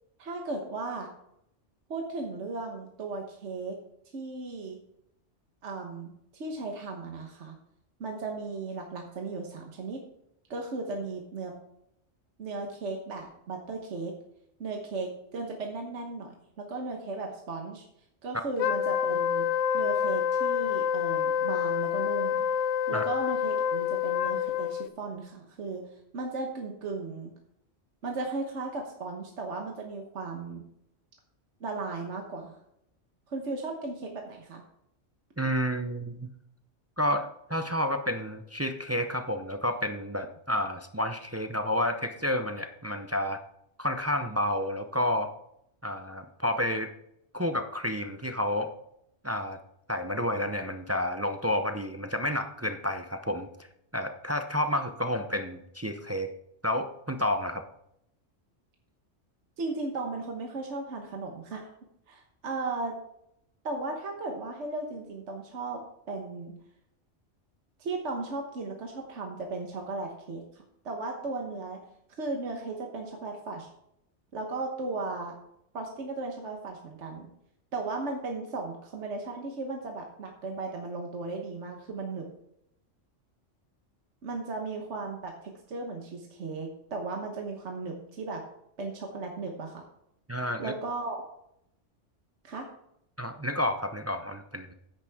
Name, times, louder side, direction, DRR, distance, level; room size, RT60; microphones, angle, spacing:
voice 1, 0.2-1.1 1.9-3.8 4.1-4.8 5.6-7.6 8.0-10.0 10.5-11.5 12.4-14.1 14.6-17.9 18.2-19.5 19.7-22.5 22.9-25.8 26.1-27.3 28.0-30.6 31.6-32.6 33.3-34.6 59.6-61.7 62.1-62.9 63.6-66.5 67.8-71.8 72.2-73.7 74.3-75.4 75.7-77.3 77.7-82.3 84.2-88.4 88.8-89.8 90.6-91.2 92.4-92.6, right 3 dB, 65° right, 2 dB, 1.5 m, -36 dB
Wind instrument woodwind instrument, 18.6-24.9, left 9 dB, 85° left, 1.0 m, -27 dB
voice 2, 35.4-36.3 37.0-43.4 43.8-45.3 45.8-46.9 47.3-48.7 49.2-49.6 49.9-53.5 53.9-56.3 56.6-57.6 90.3-90.7 93.2-94.7, left 1 dB, 20° right, 6 dB, 0.4 m, -30 dB
10.5 x 8.6 x 3.6 m, 0.76 s
omnidirectional pair, 1.3 m